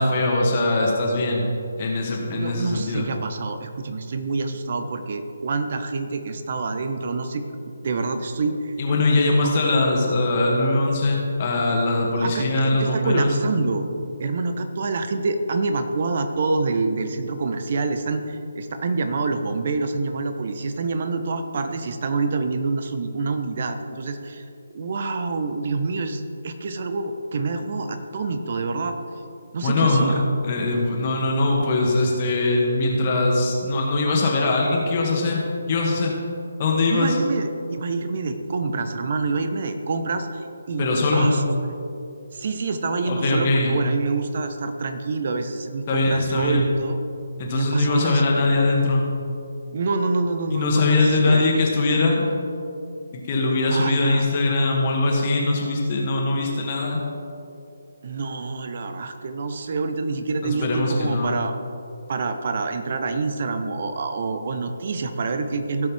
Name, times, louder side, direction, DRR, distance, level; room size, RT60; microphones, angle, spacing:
voice 1, 0.0-1.4 1.8-3.1 8.8-13.3 29.6-30.2 30.4-35.4 35.7-36.1 36.6-37.2 40.8-41.3 43.1-43.8 45.9-46.7 47.4-49.0 50.5-52.2 53.1-57.0 60.4-61.4, left 2 dB, 35° left, -1 dB, 1.8 m, -21 dB
voice 2, 2.3-7.4 7.8-8.7 9.4-9.5 12.2-13.9 14.2-24.4 24.7-29.0 29.5-30.2 36.9-41.9 42.3-47.0 47.5-48.5 49.7-51.5 53.7-54.3 58.0-61.5 62.1-65.9, right 3 dB, 45° right, 8 dB, 0.9 m, -27 dB
16.5 x 6.4 x 3.6 m, 2.7 s
figure-of-eight pair, 145°, 0 cm